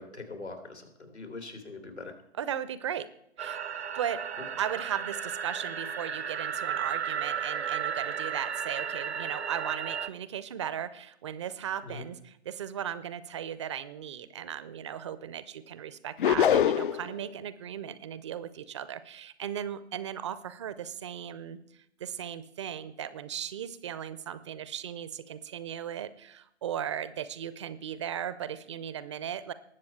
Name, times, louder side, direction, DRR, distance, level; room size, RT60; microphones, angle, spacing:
voice 1, 0.0-2.1 11.8-12.1, left 3 dB, 90° left, 4 dB, 2.9 m, -42 dB
voice 2, 2.4-3.1 3.4-3.6 3.9-4.2 4.6-21.6 22.0-29.5, right 9 dB, 30° right, 15 dB, 0.5 m, -37 dB
sound 1, 3.4-10.1, right 8 dB, 75° right, 0.7 m, -34 dB
sound 2, 16.2-17.1, left 9 dB, 50° left, 0.4 m, -23 dB
19.5 x 7.4 x 4.5 m, 0.76 s
figure-of-eight pair, 120°, 33 cm